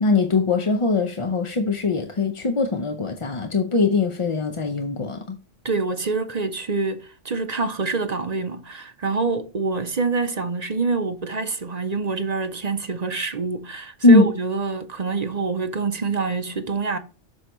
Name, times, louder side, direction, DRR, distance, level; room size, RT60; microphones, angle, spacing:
voice 1, 0.0-5.4 14.0-14.3, left 3 dB, 35° left, 0.6 m, -20 dB
voice 2, 5.6-17.0, right 4 dB, 40° right, 0.7 m, -26 dB
7.8 x 6.4 x 3.0 m
omnidirectional pair, 1.2 m